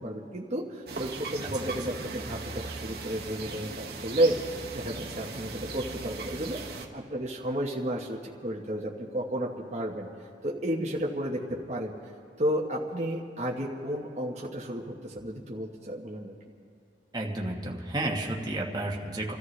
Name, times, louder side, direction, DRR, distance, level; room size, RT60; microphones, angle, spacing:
voice 1, 0.0-10.1 10.4-12.0 12.4-16.3, right 1 dB, 40° right, -2 dB, 1.1 m, -32 dB
sound 1, 0.9-6.9, right 3 dB, 65° right, 1.3 m, -38 dB
voice 2, 1.4-1.7 17.1-19.3, right 1 dB, 25° right, -2 dB, 1.4 m, -32 dB
28.5 x 14.0 x 3.2 m, 2.4 s
head